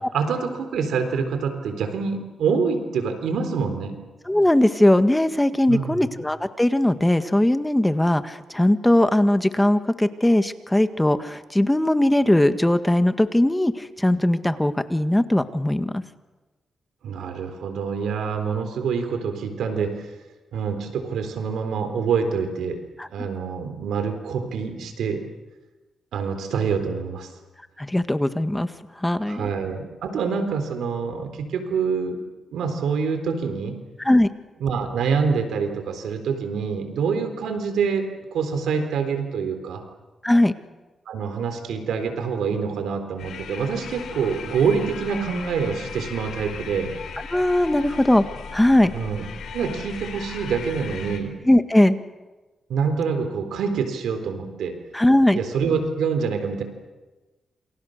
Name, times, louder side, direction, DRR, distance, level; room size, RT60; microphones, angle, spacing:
voice 1, 0.1-3.9 5.7-6.1 17.0-20.1 20.5-22.8 23.1-25.2 26.1-27.3 29.3-32.2 32.5-33.8 34.6-39.8 41.1-46.9 48.9-49.3 49.5-51.3 52.7-54.8 55.3-56.6, right 5 dB, 90° right, 7 dB, 3.8 m, -26 dB
voice 2, 4.3-16.0 23.0-23.3 27.8-28.7 29.0-29.5 34.0-34.3 40.2-40.5 47.3-48.2 48.5-48.9 51.5-52.0 54.9-55.4, left 1 dB, 10° left, 10 dB, 1.7 m, -19 dB
sound 1, 43.2-51.2, left 5 dB, 85° left, 4.1 m, -37 dB
28.0 x 27.5 x 6.6 m, 1.2 s
cardioid pair, 60°, 0 cm